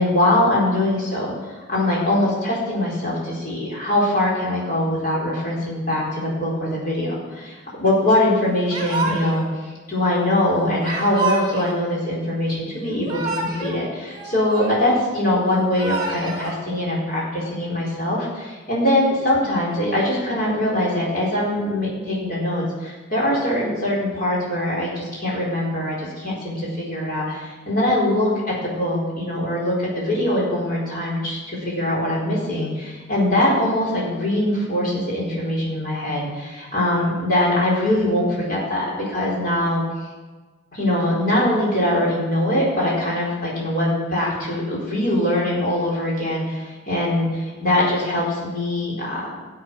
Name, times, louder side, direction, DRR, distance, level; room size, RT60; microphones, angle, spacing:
voice 1, 0.0-9.4 9.9-28.3 28.6-39.8 40.7-49.4, left 1 dB, 45° left, -5 dB, 4.4 m, -22 dB
Yell / Crying sobbing, 8.7-9.5 10.8-11.8 12.9-13.8 14.1-15.0 15.6-16.5, right 3 dB, 25° right, 2.6 m, -28 dB
13.0 x 7.9 x 6.3 m, 1.3 s
head